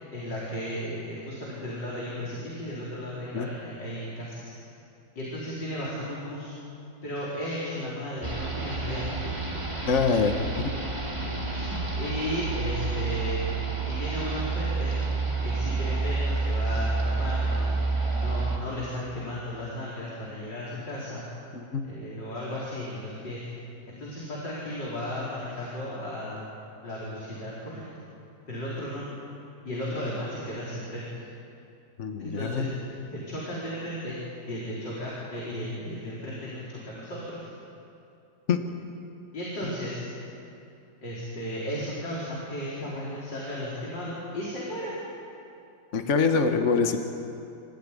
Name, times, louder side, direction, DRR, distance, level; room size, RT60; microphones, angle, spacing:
voice 1, 0.1-4.5 5.1-6.6 7.0-9.3 11.5-13.4 13.9-14.9 15.4-17.7 18.1-21.3 21.8-23.5 23.9-26.5 26.8-27.8 28.5-29.1 29.6-31.2 32.2-34.2 34.5-37.5 39.3-40.1 41.0-44.9, left 1 dB, 80° left, -7 dB, 5.0 m, -35 dB
sound 1, 8.2-18.6, right 3 dB, 15° right, 2.3 m, -29 dB
voice 2, 9.9-10.7 21.5-21.8 32.0-32.7 38.5-38.6 45.9-47.0, left 5 dB, 45° left, 5 dB, 1.5 m, -25 dB
27.5 x 15.0 x 9.9 m, 2.7 s
omnidirectional pair, 1.9 m